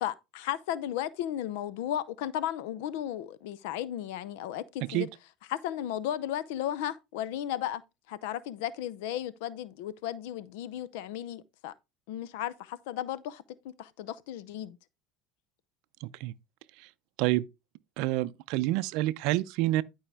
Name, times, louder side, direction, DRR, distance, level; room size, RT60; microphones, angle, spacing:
voice 1, 0.0-5.1 5.5-7.8 8.1-11.7 12.1-14.8, left 11 dB, 85° left, 0.6 m, -35 dB
voice 2, 16.0-16.3 17.2-17.4 18.0-19.8, right 16 dB, 70° right, 0.5 m, -28 dB
11.5 x 4.8 x 3.4 m
cardioid pair, 135°, 0 cm